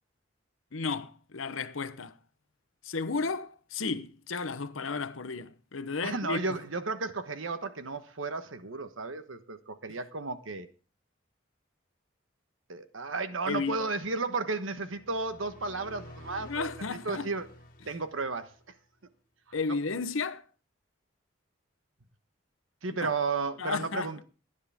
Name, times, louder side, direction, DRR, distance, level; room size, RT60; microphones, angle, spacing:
voice 1, 0.7-2.2 2.8-6.6 13.5-13.8 16.4-17.3 19.5-20.4 23.0-23.1 23.6-24.1, left 4 dB, 85° left, 0.9 m, -33 dB
voice 2, 6.0-10.7 12.7-16.7 17.0-17.5 17.8-18.5 19.7-19.8 22.8-24.2, right 3 dB, 85° right, 1.3 m, -33 dB
sound 1, 14.9-18.8, left 1 dB, 45° left, 1.8 m, -50 dB
18.5 x 9.9 x 3.6 m
head